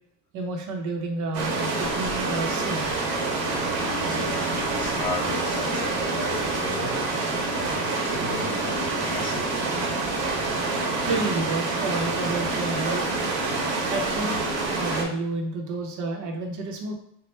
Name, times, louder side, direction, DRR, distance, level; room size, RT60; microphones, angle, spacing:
voice 1, 0.3-2.9 11.0-13.0 13.9-14.4 14.8-16.9, right 3 dB, 40° right, 1 dB, 0.7 m, -30 dB
sound 1, 1.3-15.0, right 3 dB, 70° right, 1.0 m, -27 dB
voice 2, 3.9-4.4 4.7-7.0 7.5-9.5, left 2 dB, 10° left, -5 dB, 0.8 m, -35 dB
4.2 x 2.1 x 3.2 m, 0.71 s
cardioid pair, 155°, 45 cm